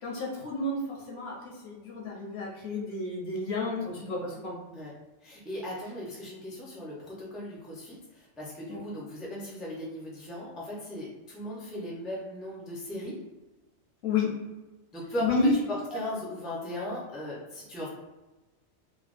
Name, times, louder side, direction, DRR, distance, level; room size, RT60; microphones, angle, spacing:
voice 1, 0.0-4.6 8.7-8.8 14.0-14.3 15.2-15.5, left 3 dB, 65° left, -3 dB, 1.1 m, -30 dB
voice 2, 5.2-13.2 14.9-17.9, left 1 dB, ahead, -5 dB, 0.5 m, -37 dB
3.3 x 2.2 x 2.5 m, 1.1 s
omnidirectional pair, 1.2 m